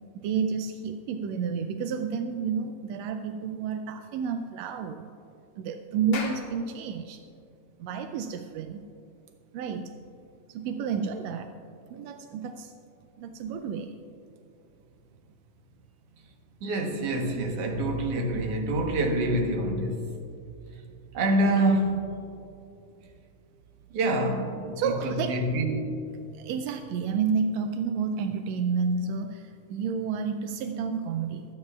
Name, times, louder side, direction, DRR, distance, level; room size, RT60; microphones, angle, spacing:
voice 1, 0.1-5.1 5.6-7.2 7.8-8.8 9.5-9.9 10.5-11.5 11.9-12.7 13.2-13.9 24.8-25.4 26.3-31.5, right 6 dB, 80° right, 6 dB, 1.5 m, -30 dB
Clapping, 5.9-10.8, left 4 dB, 75° left, 2.7 m, -44 dB
voice 2, 16.6-20.0 21.1-22.0 23.9-25.9, right 1 dB, 60° right, 2 dB, 2.0 m, -26 dB
24.5 x 9.6 x 2.4 m, 2.6 s
omnidirectional pair, 3.4 m